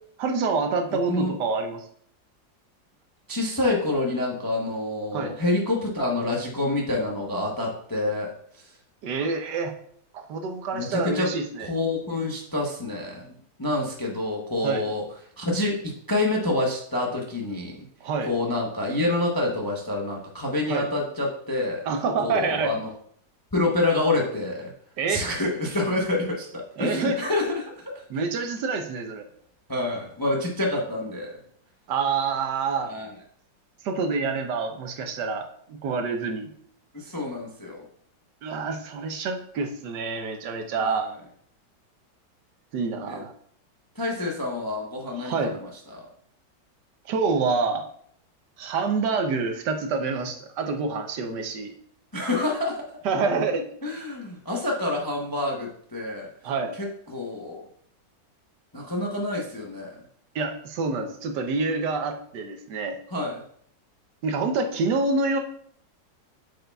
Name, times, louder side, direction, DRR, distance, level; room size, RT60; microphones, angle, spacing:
voice 1, 0.2-1.8 5.1-5.3 9.0-9.7 10.1-11.7 14.6-14.8 18.0-18.3 20.7-20.9 21.8-22.7 25.0-25.3 26.8-27.2 28.1-29.3 31.9-32.9 33.8-36.5 38.4-41.1 42.7-43.3 45.1-45.5 47.1-47.8 48.6-51.7 53.0-53.6 56.4-56.7 60.3-63.0 64.2-65.4, right 4 dB, 70° right, 5 dB, 1.3 m, -27 dB
voice 2, 3.3-8.3 10.7-11.3 11.7-15.0 15.4-15.7 16.1-17.8 18.2-21.8 22.2-22.9 23.5-24.7 25.1-27.8 29.7-31.3 32.8-33.1 36.9-37.8 40.8-41.1 43.1-43.2 44.0-45.6 45.9-46.0 52.1-52.9 53.8-56.3 56.8-57.6 58.7-59.9 63.1-63.4, left 2 dB, 20° left, -1 dB, 0.5 m, -27 dB
8.0 x 6.6 x 2.3 m, 0.64 s
omnidirectional pair, 2.0 m